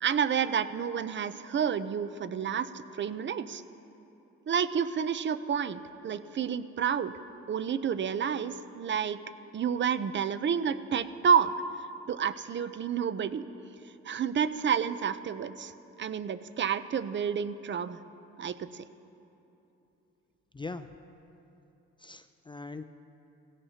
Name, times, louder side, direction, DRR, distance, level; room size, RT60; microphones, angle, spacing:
voice 1, 0.0-3.6 4.5-7.1 7.5-9.2 9.5-11.5 12.1-13.5 14.0-15.7 16.0-18.0 18.4-18.8, right 7 dB, 40° right, 13 dB, 0.5 m, -29 dB
voice 2, 20.5-20.9 22.0-22.8, left 3 dB, 15° left, 8 dB, 0.4 m, -40 dB
17.0 x 16.5 x 2.8 m, 2.9 s
cardioid pair, 90°, 30 cm